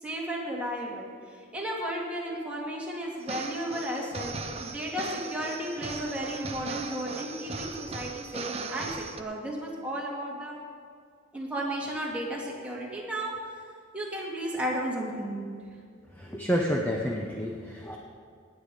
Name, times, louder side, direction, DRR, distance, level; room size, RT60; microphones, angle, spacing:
voice 1, 0.0-10.6 11.3-13.3 13.9-15.5, right 1 dB, 5° right, -4 dB, 2.4 m, -34 dB
sound 1, 3.2-9.2, right 4 dB, 30° right, 0.7 m, -38 dB
voice 2, 16.2-18.0, equal, 10° left, -1 dB, 0.9 m, -29 dB
18.5 x 8.5 x 5.0 m, 2.1 s
head